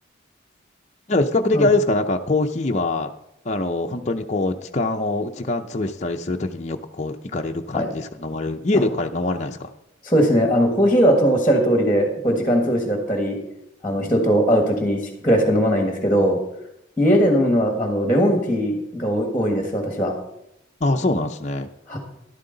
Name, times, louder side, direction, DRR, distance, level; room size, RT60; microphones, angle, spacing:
voice 1, 1.1-3.1 3.4-9.7 14.0-14.2 20.8-21.7, left 2 dB, 35° left, 3 dB, 0.6 m, -23 dB
voice 2, 10.0-13.4 13.8-16.4 17.0-20.1 21.9-22.0, equal, 10° left, 2 dB, 1.5 m, -19 dB
13.0 x 11.5 x 3.9 m, 0.82 s
head